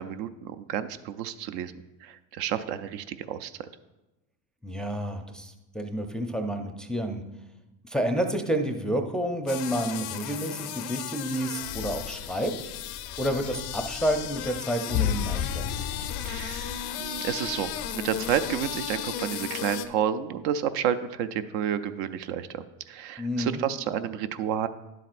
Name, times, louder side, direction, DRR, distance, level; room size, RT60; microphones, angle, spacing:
voice 1, 0.0-1.7 2.0-3.5 16.2-24.7, right 9 dB, 65° right, 11 dB, 0.6 m, -30 dB
voice 2, 4.6-7.2 7.8-12.5 13.2-15.7 23.2-23.6, right 1 dB, ahead, 5 dB, 0.5 m, -29 dB
sound 1, 9.5-19.9, left 10 dB, 90° left, 0.7 m, -36 dB
sound 2, 11.5-19.6, left 10 dB, 50° left, 0.4 m, -36 dB
10.5 x 7.5 x 2.5 m, 0.99 s
supercardioid pair, 100°, 46 cm